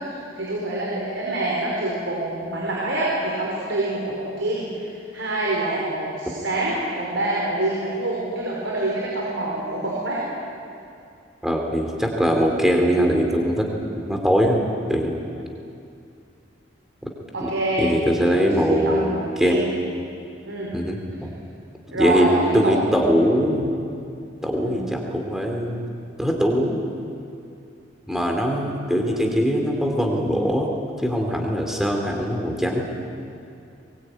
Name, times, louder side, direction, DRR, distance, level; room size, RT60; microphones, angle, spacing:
voice 1, 0.0-10.2 17.3-19.6 20.5-20.7 21.9-22.7 24.6-24.9, right 2 dB, 80° right, -4 dB, 5.2 m, -26 dB
voice 2, 11.4-13.7 14.0-14.6 14.9-15.2 17.8-19.1 19.4-19.6 20.7-21.3 21.9-22.3 22.5-23.8 24.4-25.9 26.2-26.8 28.1-30.7 31.0-32.8, equal, ahead, 1 dB, 3.2 m, -21 dB
22.0 x 22.0 x 9.4 m, 2.5 s
head